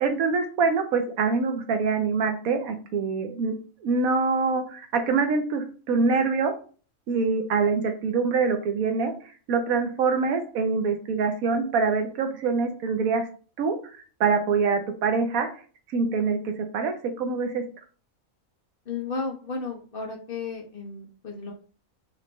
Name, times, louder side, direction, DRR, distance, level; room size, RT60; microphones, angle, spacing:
voice 1, 0.0-3.5 3.8-6.5 7.1-9.1 9.5-13.2 13.6-13.8 14.2-15.5 15.9-17.6, right 4 dB, 85° right, 6 dB, 1.2 m, -24 dB
voice 2, 18.9-21.5, left 4 dB, 45° left, 0 dB, 0.9 m, -33 dB
4.2 x 3.3 x 3.0 m, 0.40 s
omnidirectional pair, 1.4 m